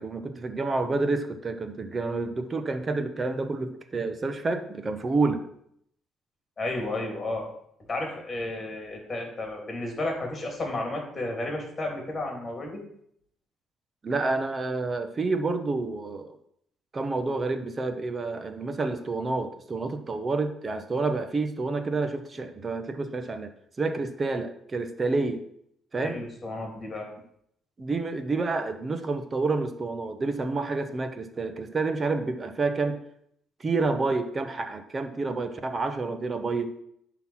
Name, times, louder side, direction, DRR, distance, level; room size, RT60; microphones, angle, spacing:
voice 1, 0.0-5.4 14.0-16.3 16.9-23.5 23.8-25.4 25.9-26.2 27.8-33.0 33.6-36.7, right 3 dB, 25° right, 8 dB, 1.1 m, -29 dB
voice 2, 6.6-7.5 7.9-12.8 26.0-27.1, left 2 dB, 25° left, 1 dB, 3.2 m, -32 dB
10.5 x 4.1 x 7.4 m, 0.70 s
cardioid pair, 130°, 0 cm